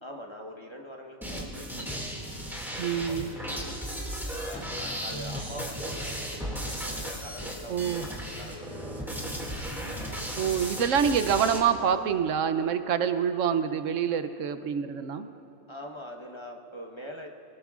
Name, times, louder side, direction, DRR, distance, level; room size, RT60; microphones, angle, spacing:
voice 1, 0.0-2.0 2.6-3.8 4.2-10.5 10.8-10.9 15.7-17.3, equal, 25° left, 1 dB, 1.1 m, -44 dB
sound 1, 1.2-11.6, equal, ahead, 2.1 m, -35 dB
voice 2, 2.8-3.4 7.7-8.1 10.4-15.3, right 7 dB, 75° right, 10 dB, 1.0 m, -26 dB
25.0 x 19.0 x 2.4 m, 2.8 s
omnidirectional pair, 1.3 m